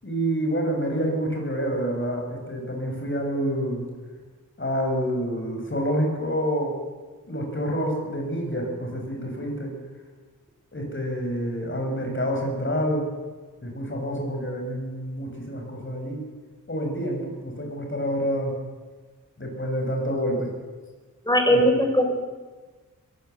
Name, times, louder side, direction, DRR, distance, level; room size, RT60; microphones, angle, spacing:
voice 1, 0.0-3.8 4.6-6.8 7.3-9.7 10.7-13.0 13.6-16.2 16.7-18.5 19.4-20.5 21.5-21.6, equal, 40° left, 2 dB, 6.8 m, -27 dB
voice 2, 21.3-22.1, equal, 15° left, 5 dB, 4.1 m, -19 dB
21.5 x 16.5 x 8.2 m, 1.3 s
wide cardioid pair, 75°, 32 cm